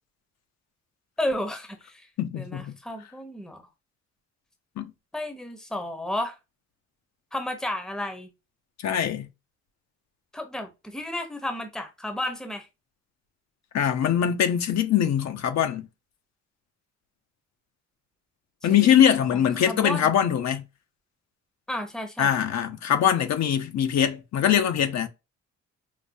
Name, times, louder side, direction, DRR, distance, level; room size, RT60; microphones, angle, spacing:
voice 1, 1.2-2.1 2.3-3.7 5.1-6.4 7.3-8.3 10.3-12.7 18.7-20.1 21.7-22.4, left 1 dB, ahead, 0.8 m, -32 dB
voice 2, 2.2-2.8 4.8-4.9 8.8-9.3 13.7-15.9 18.6-20.6 22.2-25.1, left 9 dB, 60° left, 0.7 m, -22 dB
5.0 x 2.1 x 2.6 m
cardioid pair, 90°, 30 cm